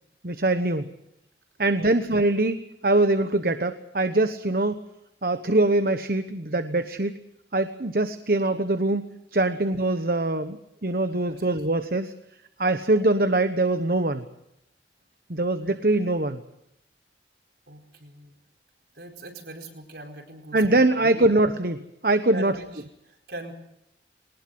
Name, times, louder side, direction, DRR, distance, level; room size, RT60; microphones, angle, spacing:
voice 1, 0.2-0.9 1.6-4.8 5.2-7.1 7.5-9.0 9.3-10.6 10.8-12.1 12.6-14.2 15.3-16.4 20.5-22.5, right 2 dB, 55° right, 9 dB, 1.1 m, -23 dB
voice 2, 17.7-18.4 18.9-21.3 22.3-23.5, right 1 dB, 70° right, 4 dB, 4.7 m, -41 dB
22.0 x 19.5 x 7.8 m, 0.81 s
head